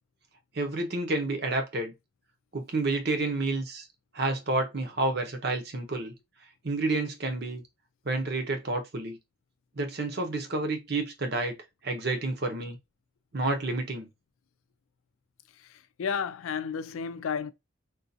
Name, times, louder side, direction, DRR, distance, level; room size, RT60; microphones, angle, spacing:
voice 1, 0.5-1.9 2.5-3.9 4.1-6.1 6.6-7.6 8.0-9.2 9.7-11.6 11.8-12.8 13.3-14.1, right 2 dB, 50° right, 0.8 m, -29 dB
voice 2, 15.5-17.5, left 6 dB, 80° left, 0.4 m, -32 dB
3.8 x 2.4 x 2.7 m
head